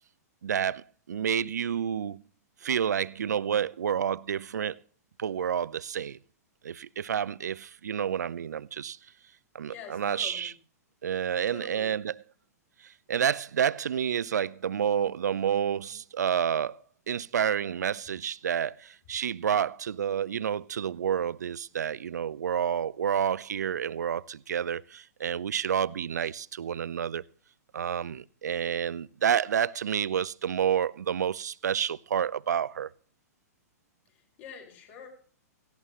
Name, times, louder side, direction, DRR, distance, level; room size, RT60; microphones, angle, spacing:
voice 1, 0.4-2.2 2.6-4.8 5.2-6.2 6.6-9.0 9.5-10.5 11.0-12.2 12.8-16.8 17.1-27.2 27.7-32.9, right 8 dB, 80° right, 0.5 m, -29 dB
voice 2, 9.6-10.5 11.5-11.9 34.1-35.1, left 8 dB, 50° left, 5.6 m, -46 dB
17.5 x 16.0 x 3.1 m
hypercardioid pair, 120°, 9 cm